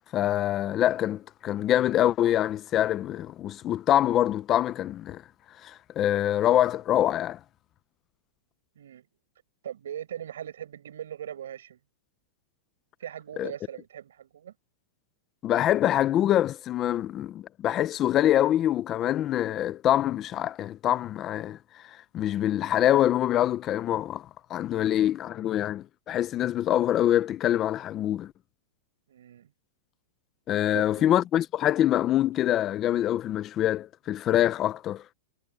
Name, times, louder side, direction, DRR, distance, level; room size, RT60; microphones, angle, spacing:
voice 1, 0.1-5.2 5.6-7.4 13.4-13.5 15.4-21.6 21.8-28.3 30.5-35.0, left 12 dB, 15° left, 0.4 m, -25 dB
voice 2, 8.8-9.1 9.6-11.8 13.0-14.5 29.1-29.5 30.7-31.2, right 10 dB, 80° right, 7.2 m, -40 dB
supercardioid pair, 180°, 0 cm